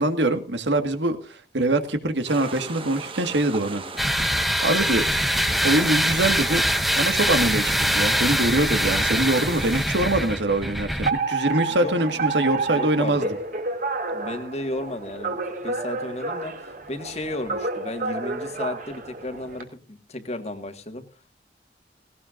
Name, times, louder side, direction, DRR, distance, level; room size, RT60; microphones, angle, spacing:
voice 1, 0.0-3.8 4.2-5.0 5.6-6.6 7.0-13.2, right 1 dB, 80° right, 8 dB, 1.8 m, -24 dB
sound 1, 2.3-9.8, right 3 dB, 30° right, 1.5 m, -37 dB
sound 2, 4.0-11.1, equal, ahead, 0.8 m, -23 dB
Alarm, 11.1-19.6, right 3 dB, 45° right, 2.6 m, -29 dB
voice 2, 12.7-13.3 14.1-21.0, left 1 dB, 35° left, 7 dB, 1.8 m, -34 dB
18.5 x 18.0 x 2.6 m, 0.37 s
head